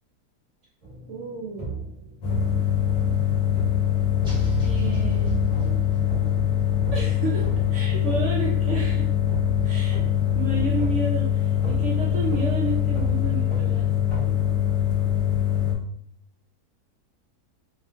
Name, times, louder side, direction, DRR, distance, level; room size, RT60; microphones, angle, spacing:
sound 1, 0.8-14.6, right 3 dB, 25° right, 0.7 m, -36 dB
voice 1, 1.1-1.8 4.6-5.4 6.9-9.1 9.6-10.0 10.3-13.9, right 2 dB, 75° right, -3 dB, 0.6 m, -31 dB
sound 2, 2.2-15.7, left 10 dB, 70° left, 1.0 m, -23 dB
sound 3, 4.2-6.1, right 6 dB, 10° right, 0.3 m, -35 dB
2.8 x 2.4 x 2.4 m, 0.62 s
omnidirectional pair, 1.8 m